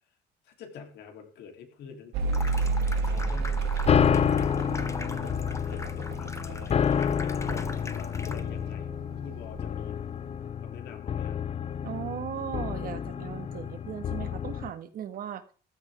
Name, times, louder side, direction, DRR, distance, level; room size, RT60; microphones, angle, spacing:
voice 1, 0.4-2.6 3.0-3.6 5.1-6.9 7.4-10.0 10.6-11.4, left 6 dB, 75° left, 4 dB, 3.4 m, -46 dB
Mechanical fan, 2.1-9.0 9.3-10.1, right 4 dB, 80° right, 2.4 m, -31 dB
Water tap faucet / Sink (filling or washing), 2.2-8.7, left 3 dB, 15° left, 1.3 m, -42 dB
sound 1, 3.9-14.7, left 8 dB, 40° left, 0.7 m, -29 dB
voice 2, 11.8-15.5, right 9 dB, 60° right, 10 dB, 1.7 m, -37 dB
15.0 x 13.5 x 3.7 m, 0.38 s
cardioid pair, 110°, 17 cm